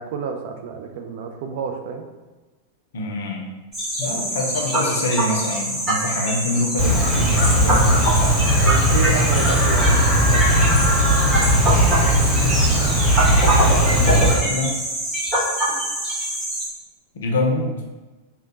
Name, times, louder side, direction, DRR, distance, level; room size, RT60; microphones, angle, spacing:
voice 1, 0.0-2.1 8.6-10.9, right 6 dB, 50° right, 4 dB, 0.3 m, -30 dB
voice 2, 2.9-3.5 4.0-7.9 13.9-14.8 17.1-17.8, left 2 dB, 60° left, 1 dB, 0.5 m, -25 dB
sound 1, 3.7-16.7, right 1 dB, 25° right, 1.4 m, -24 dB
Chirp tweet, 6.8-14.4, equal, 5° right, 1.2 m, -18 dB
3.0 x 2.3 x 3.0 m, 1.2 s
figure-of-eight pair, 90°, 0 cm